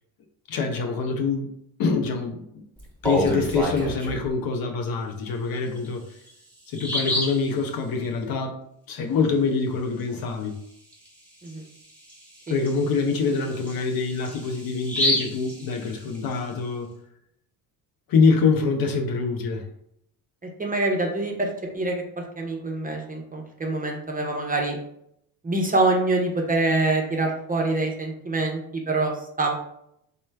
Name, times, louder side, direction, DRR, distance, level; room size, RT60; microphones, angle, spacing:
voice 1, 0.5-1.5 1.8-2.6 3.0-6.0 6.7-8.6 8.9-10.5 12.5-16.9 18.1-19.6, left 4 dB, 50° left, 0.6 m, -25 dB
Bird vocalization bird call bird song, 2.8-4.3 5.8-5.9 6.3-6.4 6.7-7.5 10.9-11.1 11.5-11.6 12.1-16.3, left 1 dB, 5° left, 1.2 m, -28 dB
voice 2, 20.6-21.5 21.7-24.8 25.4-29.1 29.4-29.5, right 2 dB, 20° right, 0.7 m, -25 dB
3.0 x 2.2 x 3.3 m
hypercardioid pair, 60°, 47 cm